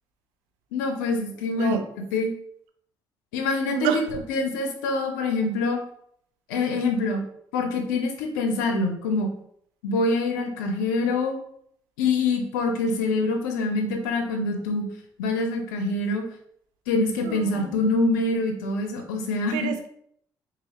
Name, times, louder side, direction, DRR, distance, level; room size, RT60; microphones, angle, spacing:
voice 1, 0.7-1.8 2.1-2.3 3.3-5.8 6.5-7.2 7.5-9.3 9.8-11.4 12.0-14.9 15.2-16.2 16.9-19.7, left 3 dB, 85° left, 4 dB, 0.6 m, -25 dB
voice 2, 3.6-4.0 17.2-17.6 19.5-19.9, right 8 dB, 80° right, 7 dB, 0.4 m, -27 dB
4.1 x 2.6 x 2.8 m, 0.69 s
hypercardioid pair, 55°, 10 cm